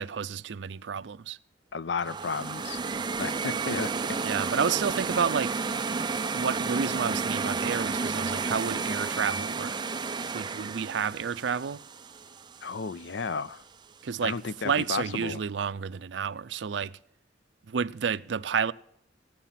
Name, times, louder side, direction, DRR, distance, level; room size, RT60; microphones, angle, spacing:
voice 1, 0.0-1.4 4.2-5.6 6.3-9.8 10.3-11.8 14.0-14.4 14.6-17.0 17.7-18.7, right 6 dB, 75° right, 0.5 m, -30 dB
voice 2, 1.7-2.8 3.2-3.9 12.6-13.6 14.2-15.4, left 5 dB, 70° left, 0.5 m, -33 dB
sound 1, 2.0-13.0, right 4 dB, 25° right, 0.5 m, -32 dB
14.5 x 9.2 x 5.7 m
head